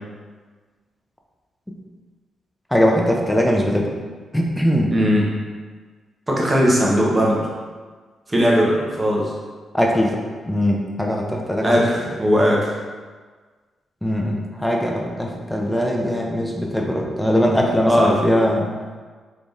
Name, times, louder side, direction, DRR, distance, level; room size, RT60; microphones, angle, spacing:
voice 1, 2.7-3.9 4.3-4.9 9.7-10.2 10.5-11.8 14.0-18.7, equal, 5° left, 0 dB, 0.6 m, -20 dB
voice 2, 4.9-5.4 6.3-7.5 8.3-9.3 11.6-12.7 17.9-18.2, equal, 25° right, -4 dB, 1.0 m, -18 dB
3.4 x 3.1 x 2.6 m, 1.4 s
cardioid pair, 65°, 0 cm